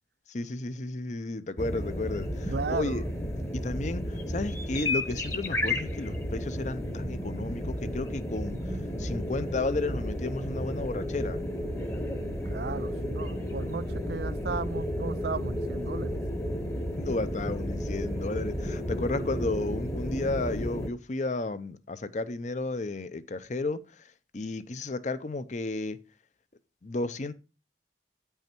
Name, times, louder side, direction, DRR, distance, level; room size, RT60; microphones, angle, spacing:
voice 1, 0.3-3.0 3.5-8.6 9.0-11.4 17.0-23.8 24.3-26.0 26.8-27.3, left 2 dB, 40° left, 0.6 m, -33 dB
sound 1, 1.6-20.9, left 1 dB, 15° left, 1.0 m, -32 dB
voice 2, 2.5-3.0 12.2-16.2, right 4 dB, 60° right, 0.4 m, -35 dB
9.2 x 5.6 x 4.4 m
head